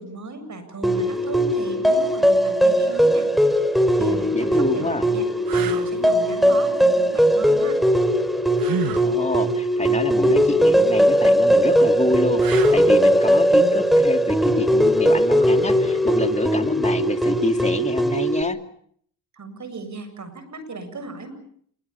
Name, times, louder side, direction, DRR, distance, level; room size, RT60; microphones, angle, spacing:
voice 1, 0.0-3.3 3.9-5.3 5.5-7.8 19.3-21.3, right 3 dB, 50° right, 10 dB, 7.7 m, -36 dB
sound 1, 0.8-18.4, equal, ahead, 3.4 m, -19 dB
sound 2, 3.9-4.1 4.8-4.9 5.5-5.9 8.6-9.1 12.4-13.0 15.9-16.1, right 9 dB, 65° right, 1.8 m, -30 dB
voice 2, 4.3-5.0 9.0-18.6, left 2 dB, 20° left, 7 dB, 2.7 m, -27 dB
27.5 x 23.5 x 7.1 m, 0.63 s
cardioid pair, 75°, 38 cm